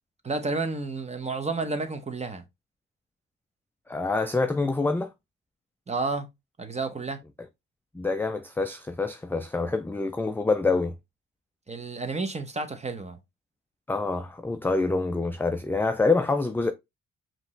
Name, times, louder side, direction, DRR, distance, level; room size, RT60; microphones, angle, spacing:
voice 1, 0.2-2.4 5.9-6.3 6.6-7.2 11.7-13.2, right 3 dB, 20° right, 1.0 m, -31 dB
voice 2, 3.9-5.1 7.9-11.0 13.9-16.7, left 3 dB, 5° left, 0.4 m, -26 dB
5.1 x 3.0 x 3.2 m
cardioid pair, 90°, 30 cm